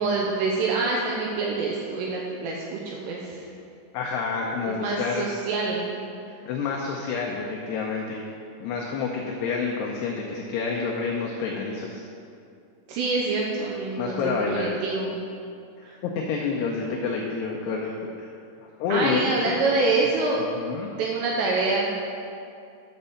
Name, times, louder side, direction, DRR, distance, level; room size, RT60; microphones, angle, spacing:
voice 1, 0.0-3.4 4.7-5.9 12.9-15.1 15.8-16.0 18.9-20.4 21.0-21.9, right 3 dB, 85° right, -2 dB, 2.5 m, -26 dB
voice 2, 3.9-5.3 6.5-8.2 8.6-12.0 14.0-14.7 16.0-18.1 18.6-19.6 20.5-20.9, left 5 dB, 85° left, -1 dB, 2.3 m, -28 dB
8.9 x 5.3 x 6.9 m, 2.5 s
omnidirectional pair, 5.6 m